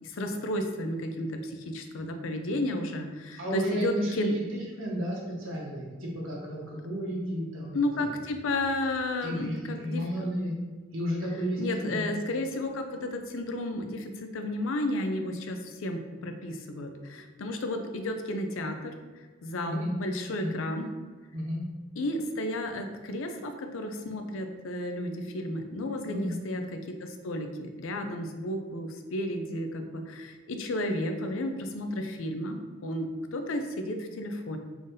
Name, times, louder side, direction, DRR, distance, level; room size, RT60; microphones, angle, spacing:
voice 1, 0.0-4.3 7.7-10.3 11.6-18.9 19.4-20.9 22.0-34.6, left 1 dB, 85° left, 5 dB, 0.5 m, -32 dB
voice 2, 3.4-4.4 4.8-7.8 9.2-10.6 10.9-12.1 19.7-19.9 20.4-20.6 21.3-21.7 26.1-26.4, equal, 90° right, -3 dB, 1.0 m, -32 dB
3.7 x 3.4 x 2.7 m, 1.4 s
head